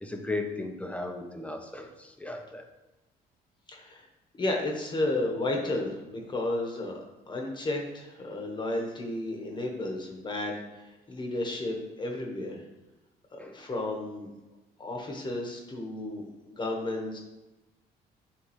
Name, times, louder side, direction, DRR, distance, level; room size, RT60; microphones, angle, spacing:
voice 1, 0.0-2.6, left 2 dB, 10° left, 4 dB, 0.8 m, -36 dB
voice 2, 3.7-4.0 4.4-7.0 7.3-12.6 13.3-14.3 14.8-17.2, left 2 dB, 25° left, 1 dB, 1.3 m, -33 dB
9.5 x 3.4 x 3.1 m, 1.0 s
cardioid pair, 110°, 17 cm